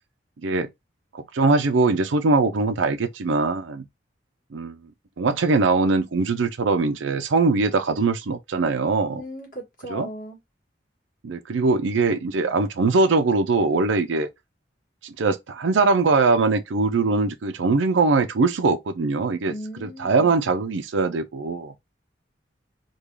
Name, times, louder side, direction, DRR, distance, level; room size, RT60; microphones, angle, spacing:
voice 1, 1.1-3.8 4.5-4.8 5.2-9.2 9.9-10.1 11.2-14.3 15.0-19.5 19.8-21.7, right 3 dB, 90° right, 0.5 m, -22 dB
voice 2, 9.2-10.4 19.5-20.3, equal, 45° left, 1.6 m, -37 dB
3.6 x 2.3 x 3.1 m
head